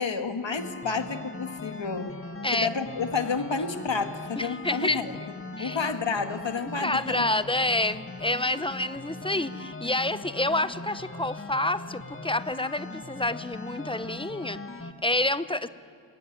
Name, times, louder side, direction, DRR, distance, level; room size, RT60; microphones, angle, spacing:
voice 1, 0.0-2.2 2.5-5.1 5.6-7.3, left 5 dB, 75° left, 6 dB, 1.8 m, -30 dB
sound 1, 0.5-14.9, left 2 dB, 30° left, 1.7 m, -40 dB
voice 2, 4.4-5.1 5.6-5.8 6.8-15.7, left 2 dB, 10° left, 13 dB, 0.8 m, -28 dB
21.0 x 20.5 x 9.2 m, 2.6 s
wide cardioid pair, 65°, 45 cm